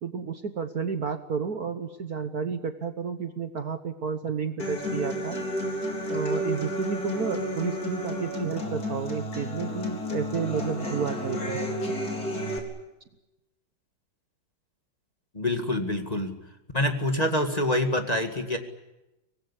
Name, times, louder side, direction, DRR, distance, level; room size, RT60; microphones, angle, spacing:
voice 1, 0.0-5.4 6.1-11.6, right 6 dB, 50° right, 9 dB, 1.5 m, -31 dB
Human voice / Acoustic guitar, 4.6-12.6, equal, 45° left, 4.3 m, -31 dB
voice 2, 15.3-16.4 16.7-18.6, left 1 dB, 20° left, 5 dB, 2.0 m, -26 dB
25.0 x 19.5 x 9.9 m, 0.97 s
omnidirectional pair, 2.3 m